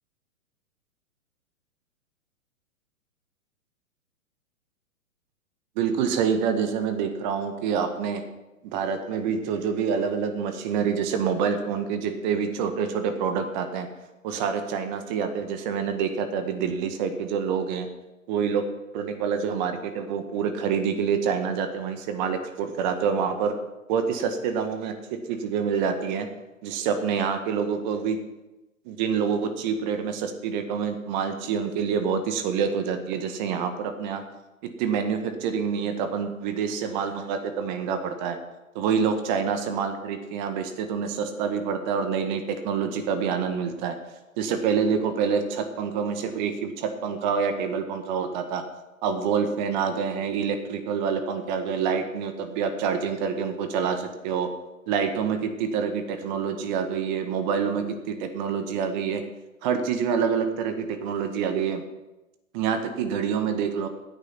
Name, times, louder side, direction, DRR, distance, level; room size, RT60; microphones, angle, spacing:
voice 1, 5.7-8.2 8.6-13.9 14.2-17.9 18.3-18.6 18.9-23.5 23.9-24.9 25.3-26.3 26.6-28.2 28.8-34.2 34.8-38.4 38.7-43.9 44.4-48.6 49.0-54.5 54.9-59.2 59.6-61.8 62.5-63.9, right 6 dB, 35° right, 7 dB, 1.7 m, -27 dB
15.5 x 9.4 x 6.0 m, 1.0 s
figure-of-eight pair, 115°, 41 cm